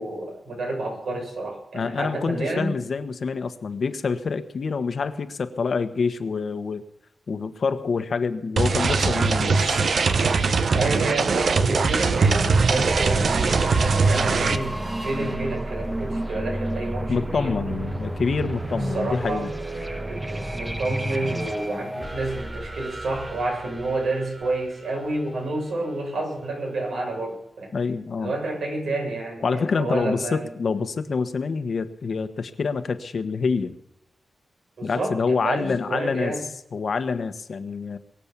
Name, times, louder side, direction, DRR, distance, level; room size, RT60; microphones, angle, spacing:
voice 1, 0.0-2.7 10.7-17.7 18.9-19.5 20.0-27.7 28.2-30.6 34.8-36.4, right 2 dB, 80° right, 0 dB, 6.8 m, -30 dB
voice 2, 1.7-6.8 7.3-9.8 17.1-19.5 27.7-28.3 29.4-33.8 34.8-36.3 36.7-38.0, left 5 dB, 60° left, 10 dB, 1.4 m, -26 dB
sound 1, 8.6-14.6, right 4 dB, 65° right, 1.0 m, -21 dB
sound 2, 12.7-25.4, right 1 dB, 20° right, 1.3 m, -31 dB
23.0 x 7.6 x 7.2 m, 0.79 s
wide cardioid pair, 105°, 0 cm